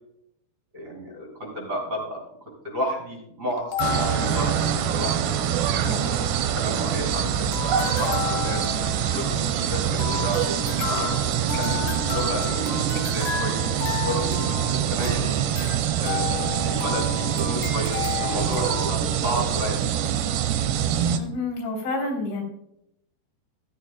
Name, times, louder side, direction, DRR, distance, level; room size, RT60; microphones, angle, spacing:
voice 1, 0.7-2.2 2.6-6.3 6.5-8.6 9.1-10.4 10.8-15.3 16.0-20.1, equal, 25° right, -2 dB, 4.3 m, -32 dB
sound 1, 3.5-5.2 5.5-5.6 5.7-6.0 6.5-7.2 7.5-18.9, left 8 dB, 60° left, 2.6 m, -33 dB
sound 2, 3.8-21.2, right 9 dB, 80° right, 3.2 m, -25 dB
sound 3, 7.8-13.2, left 2 dB, 5° right, 4.6 m, -48 dB
voice 2, 21.2-22.4, left 2 dB, 85° left, 0 dB, 5.9 m, -29 dB
14.5 x 14.0 x 2.3 m, 0.76 s
omnidirectional pair, 5.0 m